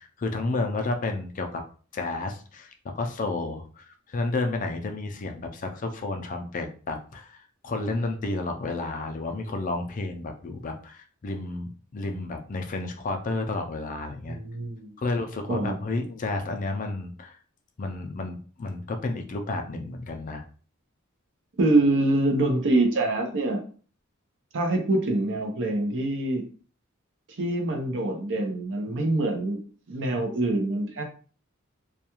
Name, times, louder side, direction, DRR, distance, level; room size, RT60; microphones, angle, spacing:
voice 1, 0.0-1.6 1.9-7.4 7.6-14.4 15.0-17.4 17.8-20.4, left 2 dB, 40° left, 5 dB, 0.4 m, -31 dB
voice 2, 14.3-14.9 15.5-15.8 21.6-23.6 24.5-26.4 27.4-29.6 29.9-31.0, right 2 dB, 60° right, 3 dB, 0.6 m, -25 dB
2.3 x 2.2 x 2.9 m, 0.40 s
head